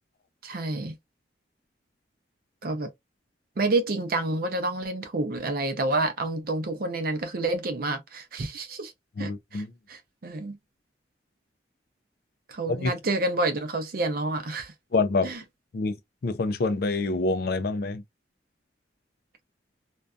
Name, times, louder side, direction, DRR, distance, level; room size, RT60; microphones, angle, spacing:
voice 1, 0.4-1.0 2.6-2.9 3.6-8.9 9.2-10.6 12.5-14.7 15.2-15.4, right 2 dB, 50° right, 0.5 m, -29 dB
voice 2, 9.2-9.7 12.8-12.9 14.9-15.3 15.7-15.9 16.2-18.0, left 3 dB, 55° left, 0.4 m, -26 dB
2.6 x 2.2 x 2.2 m
head